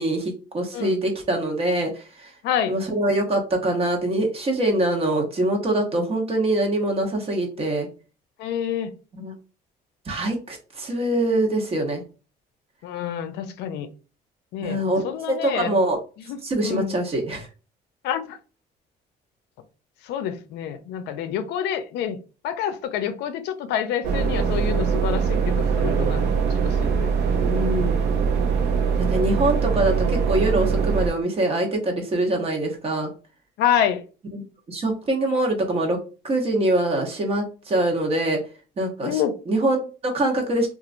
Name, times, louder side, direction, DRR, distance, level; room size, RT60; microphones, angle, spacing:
voice 1, 0.0-1.9 2.2-2.3 2.7-7.9 9.1-9.3 10.1-12.0 14.6-15.0 15.4-16.0 16.4-17.5 27.4-28.0 29.1-33.1 34.3-34.4 34.7-36.0 36.2-38.4 38.8-39.1 39.5-40.7, right 1 dB, 35° right, 2 dB, 0.9 m, -24 dB
voice 2, 2.4-2.8 5.7-6.1 8.4-9.0 12.8-13.9 14.5-15.7 16.2-17.0 18.0-18.4 20.0-27.5 33.6-34.0 39.0-39.4 40.3-40.4, left 9 dB, 85° left, 9 dB, 0.5 m, -28 dB
sound 1, 24.0-31.1, right 6 dB, 80° right, 0.6 m, -22 dB
2.9 x 2.4 x 2.5 m, 0.35 s
cardioid pair, 110°, 17 cm